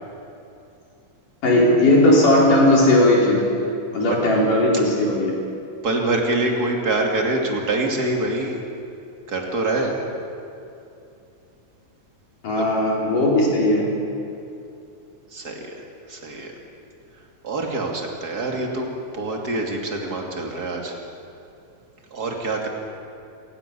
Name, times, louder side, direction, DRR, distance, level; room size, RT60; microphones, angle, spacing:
voice 1, 1.4-3.4 3.9-5.3 12.4-13.9, left 1 dB, 75° left, -2 dB, 6.0 m, -17 dB
voice 2, 5.8-8.6 9.3-9.9 12.5-12.7 15.3-15.7 16.1-16.5 17.4-21.0 22.1-22.7, right 2 dB, 30° right, 1 dB, 2.9 m, -25 dB
28.5 x 18.0 x 7.0 m, 2.7 s
omnidirectional pair, 3.7 m